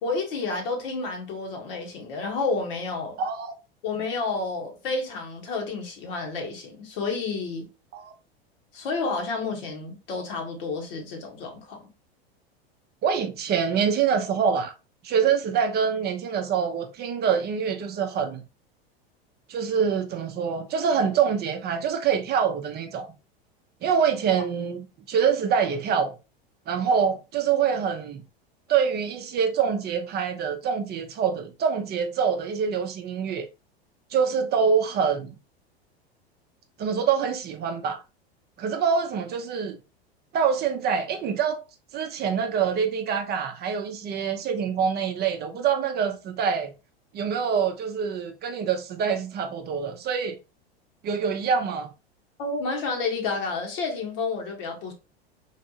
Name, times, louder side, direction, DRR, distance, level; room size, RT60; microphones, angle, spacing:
voice 1, 0.0-3.2 3.8-7.7 8.7-11.9 52.4-54.9, left 3 dB, 65° left, 1.3 m, -30 dB
voice 2, 13.0-14.7 15.0-18.4 19.5-23.1 23.8-26.1 26.7-28.2 28.7-33.5 34.1-35.4 36.8-38.0 38.6-39.8 40.3-41.6 41.9-46.7 47.1-50.4 51.0-51.9, right 7 dB, 30° right, 0.5 m, -25 dB
3.3 x 2.6 x 2.7 m
hypercardioid pair, 90°, 31 cm